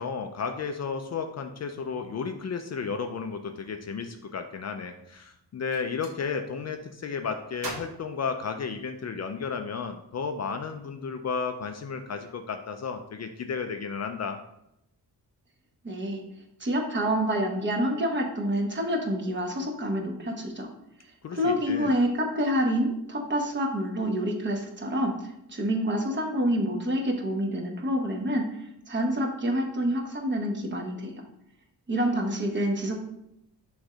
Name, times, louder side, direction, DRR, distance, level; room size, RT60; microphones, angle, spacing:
voice 1, 0.0-14.4 21.2-21.9, left 5 dB, 45° left, 6 dB, 0.5 m, -33 dB
Gunshot gunfire, 5.5-6.2 7.6-9.1, right 2 dB, 60° right, 1.7 m, -41 dB
voice 2, 15.8-16.2 16.6-20.7 21.3-28.4 28.9-31.1 31.9-33.0, equal, 30° right, 2 dB, 1.0 m, -27 dB
6.2 x 3.2 x 4.9 m, 0.81 s
wide cardioid pair, 125°, 39 cm